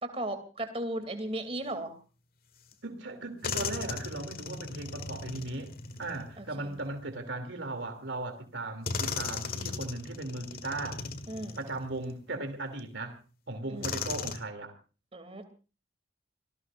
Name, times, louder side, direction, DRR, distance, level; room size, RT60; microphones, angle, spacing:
voice 1, 0.0-1.9 6.4-6.8 11.3-11.6 13.7-13.9 15.1-15.4, right 1 dB, 30° right, 2.8 m, -36 dB
sound 1, 2.7-2.8 3.4-7.1 8.0-8.1 8.9-12.2 12.8-12.9 13.8-14.4, left 4 dB, 50° left, 1.7 m, -37 dB
voice 2, 2.8-5.7 6.0-11.0 11.6-13.2 13.5-14.7, right 2 dB, 75° right, 2.9 m, -37 dB
27.0 x 18.5 x 2.6 m
head